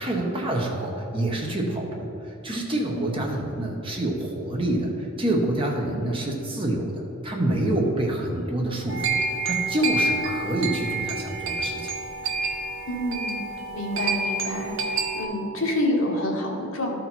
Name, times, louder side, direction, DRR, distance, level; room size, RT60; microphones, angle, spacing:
voice 1, 0.0-4.9 5.2-9.2 9.4-11.9, right 1 dB, 25° right, -1 dB, 1.0 m, -27 dB
sound 1, 8.9-15.2, right 3 dB, 65° right, 0.9 m, -28 dB
voice 2, 12.9-13.4 13.7-17.0, left 1 dB, 70° left, -1 dB, 1.4 m, -28 dB
13.0 x 4.4 x 4.1 m, 2.9 s
head